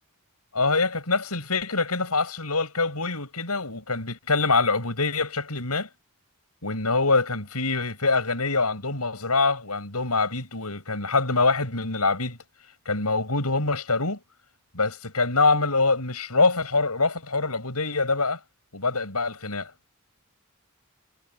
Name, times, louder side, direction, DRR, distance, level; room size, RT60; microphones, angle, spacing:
voice 1, 0.5-5.9 6.6-12.4 12.9-14.2 14.7-18.4 18.7-19.7, left 3 dB, 85° left, 7.8 m, -24 dB
head